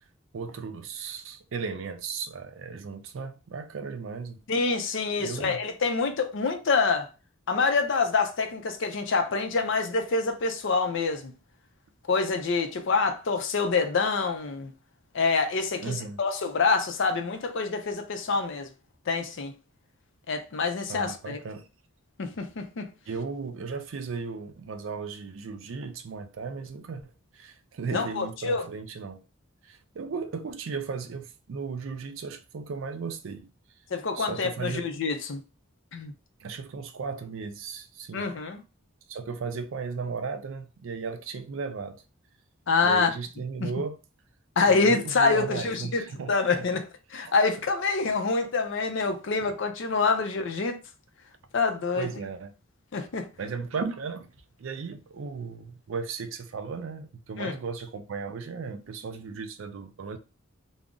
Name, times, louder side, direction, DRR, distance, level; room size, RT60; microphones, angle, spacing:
voice 1, 0.3-4.4 5.2-5.6 15.8-16.2 20.9-21.7 23.1-29.2 29.6-33.5 34.1-34.9 36.4-38.3 39.1-42.0 42.8-44.0 44.6-46.7 52.0-52.5 53.4-54.3 54.6-60.2, right 5 dB, 65° right, 0.4 m, -36 dB
voice 2, 4.5-7.1 7.5-11.3 12.1-14.7 15.1-18.7 19.1-19.5 20.3-21.4 22.2-22.9 27.9-28.6 33.9-35.4 35.9-36.1 38.1-38.6 42.7-43.1 43.6-43.7 44.6-46.8 47.1-50.8 51.5-52.1 52.9-53.3 57.4-57.5, left 4 dB, 60° left, 0.5 m, -26 dB
2.5 x 2.0 x 3.6 m
head